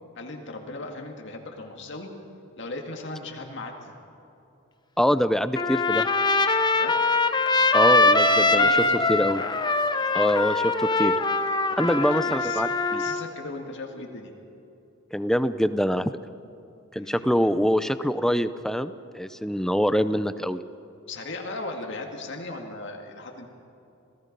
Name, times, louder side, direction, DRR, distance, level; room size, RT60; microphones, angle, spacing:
voice 1, 0.2-2.1 2.6-3.9 6.7-7.0 8.3-9.1 11.7-12.6 12.9-14.3 16.9-17.4 21.1-23.5, left 2 dB, 60° left, 2 dB, 2.1 m, -37 dB
voice 2, 5.0-6.1 7.7-8.7 9.1-9.4 10.1-11.2 11.8-13.0 15.1-16.1 16.9-20.6, equal, ahead, 13 dB, 0.5 m, -24 dB
Trumpet, 5.5-13.2, left 3 dB, 20° left, 0.8 m, -22 dB
27.5 x 17.5 x 5.3 m, 2.7 s
head